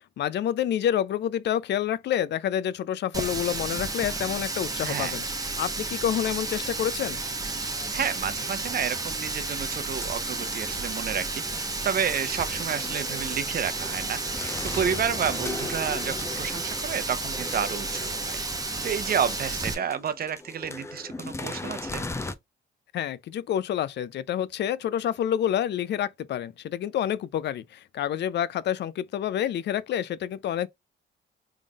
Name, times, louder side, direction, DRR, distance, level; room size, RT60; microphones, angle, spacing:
voice 1, 0.2-5.2 5.6-7.2 22.9-30.7, left 10 dB, 60° left, 0.5 m, -28 dB
Water tap faucet, 3.1-19.7, right 3 dB, 20° right, 0.9 m, -32 dB
voice 2, 4.8-5.2 7.9-11.4 11.8-18.4 18.8-22.0, right 8 dB, 50° right, 0.7 m, -30 dB
sound 1, 9.6-22.3, left 3 dB, 15° left, 0.6 m, -39 dB
3.6 x 3.5 x 2.4 m
cardioid pair, 90°, 20 cm